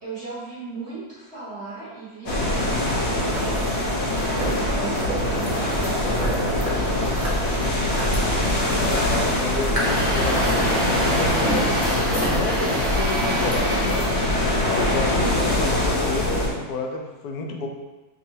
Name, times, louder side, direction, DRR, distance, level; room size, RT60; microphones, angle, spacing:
voice 1, 0.0-4.2 4.6-7.5, right 4 dB, 50° right, -9 dB, 1.1 m, -37 dB
sound 1, 2.3-16.5, left 1 dB, 55° left, 0.9 m, -23 dB
sound 2, 3.3-14.1, right 2 dB, 70° right, 0.3 m, -34 dB
voice 2, 8.8-14.1 14.6-17.7, left 4 dB, 80° left, 2 dB, 1.1 m, -30 dB
Truck, 9.8-14.6, right 1 dB, 10° right, 0.6 m, -27 dB
5.4 x 2.1 x 2.7 m, 1.2 s
omnidirectional pair, 1.7 m